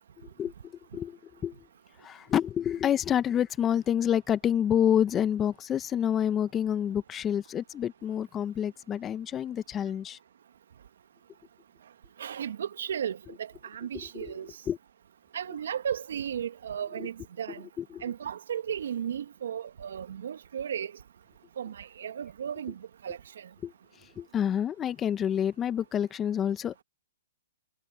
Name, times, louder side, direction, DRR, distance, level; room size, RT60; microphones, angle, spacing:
voice 1, 0.4-1.6 2.0-10.2 14.1-14.3 14.7-14.8 17.0-17.1 17.8-18.0 23.6-23.7 24.2-26.8, left 9 dB, 20° left, 1.1 m, -28 dB
voice 2, 12.2-14.5 15.3-17.7 18.0-20.9 21.6-23.5, right 8 dB, 70° right, 2.4 m, -35 dB
hypercardioid pair, 140°, 0 cm